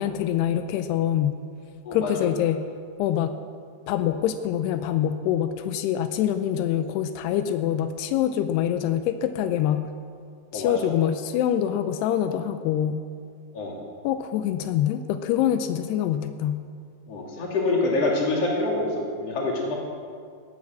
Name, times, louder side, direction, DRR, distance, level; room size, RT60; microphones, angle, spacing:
voice 1, 0.0-1.3 1.9-2.6 3.0-3.4 3.9-9.9 10.5-13.0 14.0-16.6, left 10 dB, 90° left, 9 dB, 2.3 m, -25 dB
voice 2, 10.5-10.9 13.5-13.8 17.1-19.8, left 2 dB, 40° left, -2 dB, 3.2 m, -26 dB
17.5 x 9.7 x 7.4 m, 2.2 s
omnidirectional pair, 5.5 m